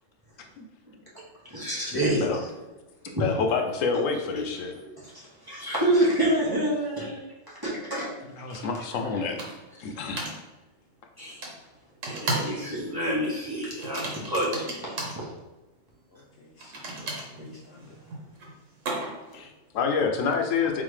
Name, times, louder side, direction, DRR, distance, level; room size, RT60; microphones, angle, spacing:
voice 1, 0.8-2.5 3.2-3.3 3.9-4.0 4.3-4.7 5.0-8.2 8.5-8.7 8.9-9.4 9.8-10.2 11.2-11.4 12.1-15.3 17.4-17.6, right 1 dB, 20° right, -7 dB, 1.0 m, -29 dB
voice 2, 1.9-2.4 3.2-4.7 8.4-9.4 9.8-10.3 19.3-20.8, left 5 dB, 85° left, 4 dB, 1.0 m, -28 dB
sound 1, 8.5-8.6 9.4-9.7 10.2-10.4 11.4-11.5 12.0-12.6 12.9-13.1 13.8-15.2 16.6-19.3, right 2 dB, 85° right, 1.3 m, -34 dB
voice 3, 16.1-18.2, left 2 dB, 60° left, -1 dB, 0.8 m, -53 dB
4.0 x 3.8 x 3.2 m, 1.1 s
omnidirectional pair, 1.3 m